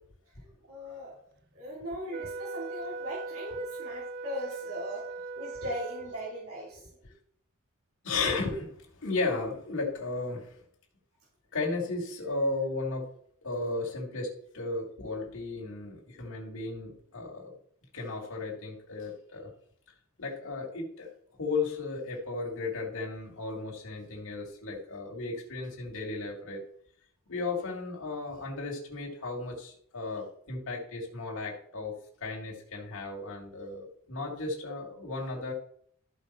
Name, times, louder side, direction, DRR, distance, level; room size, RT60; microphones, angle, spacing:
voice 1, 0.7-1.2 1.5-5.0 5.4-6.8, equal, 70° right, -6 dB, 3.3 m, -38 dB
Wind instrument woodwind instrument, 2.1-6.5, right 3 dB, 50° right, 0.4 m, -40 dB
voice 2, 8.0-8.7 9.0-10.6 11.5-13.0 13.4-17.5 17.9-19.5 20.2-21.1 21.4-26.6 27.3-31.9 32.2-35.5, left 3 dB, 60° left, -2 dB, 2.2 m, -34 dB
13.0 x 5.4 x 4.2 m, 0.63 s
head